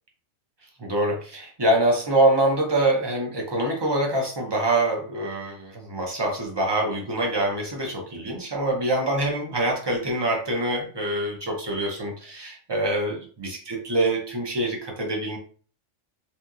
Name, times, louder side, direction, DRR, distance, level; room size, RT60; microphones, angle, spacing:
voice 1, 0.8-15.4, right 1 dB, 35° right, 0 dB, 0.4 m, -25 dB
3.0 x 2.6 x 2.3 m, 0.42 s
omnidirectional pair, 1.3 m